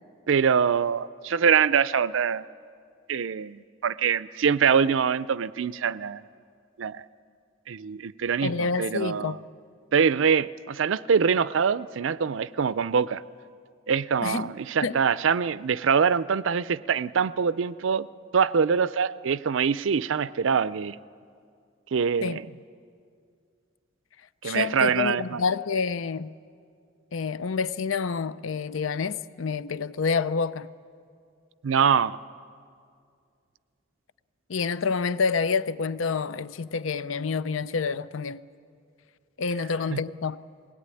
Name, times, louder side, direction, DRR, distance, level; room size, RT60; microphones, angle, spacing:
voice 1, 0.3-2.4 3.1-6.3 6.8-7.0 7.7-9.4 9.9-13.2 13.9-18.1 18.3-21.0 21.9-22.4 24.4-25.4 31.6-32.2 39.9-40.0, right 6 dB, 75° right, 0.5 m, -24 dB
voice 2, 8.4-9.4 14.2-14.5 14.8-15.0 22.2-22.4 24.4-26.3 27.1-30.7 34.5-38.4 39.4-40.4, left 5 dB, 80° left, 0.6 m, -28 dB
21.5 x 18.0 x 9.8 m
head